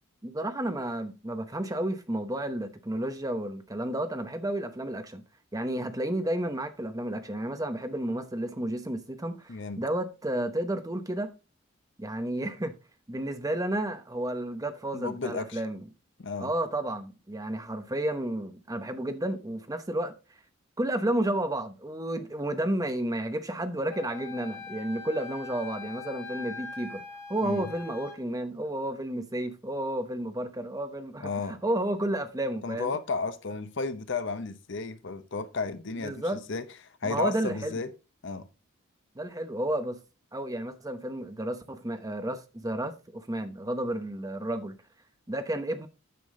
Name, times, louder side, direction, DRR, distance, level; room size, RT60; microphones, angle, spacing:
voice 1, 0.2-5.2 5.5-11.3 12.0-12.7 13.1-15.9 16.4-20.1 20.8-27.0 27.3-32.9 36.0-36.4 37.0-37.7 39.1-40.0 40.3-44.8 45.3-45.9, right 1 dB, 15° right, 0.8 m, -31 dB
voice 2, 9.5-9.8 14.9-15.6 16.2-16.5 27.4-27.7 31.2-31.6 32.6-36.2 36.5-37.9 38.2-38.5, left 4 dB, 60° left, 0.8 m, -33 dB
Wind instrument woodwind instrument, 23.9-28.2, left 5 dB, 15° left, 3.0 m, -42 dB
9.4 x 6.0 x 3.7 m
head